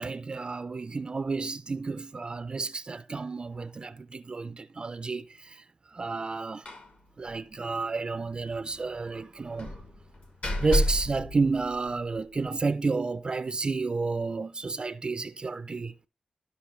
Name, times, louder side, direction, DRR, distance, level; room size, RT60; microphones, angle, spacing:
voice 1, 0.0-6.7 7.2-9.8 10.6-15.9, right 4 dB, 35° right, 0.3 m, -31 dB
Slam, 6.7-7.0 7.3-7.4 7.7-7.8 9.6-12.2, left 1 dB, 60° left, 1.9 m, -31 dB
13.0 x 5.6 x 3.1 m
wide cardioid pair, 145°, 3 cm